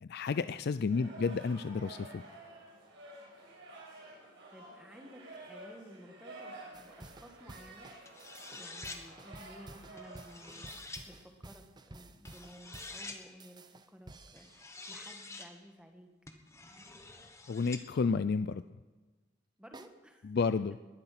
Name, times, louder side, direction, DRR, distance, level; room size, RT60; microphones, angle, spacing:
voice 1, 0.0-2.2 17.1-17.2 17.5-18.6 20.2-20.8, left 4 dB, 55° left, 13 dB, 0.4 m, -31 dB
sound 1, 0.9-10.7, right 2 dB, 65° right, 6.0 m, -51 dB
voice 2, 4.5-7.9 8.5-10.7 11.1-14.5 14.9-16.1 19.6-20.3, equal, 5° right, 4 dB, 1.6 m, -54 dB
sound 2, 6.7-14.9 19.7-19.9, right 2 dB, 20° right, 0.8 m, -53 dB
sound 3, 8.0-9.0 10.0-11.0 12.2-13.2 14.4-15.5 16.3-17.8, left 3 dB, 15° left, 1.3 m, -47 dB
20.0 x 12.0 x 5.8 m, 1.3 s
head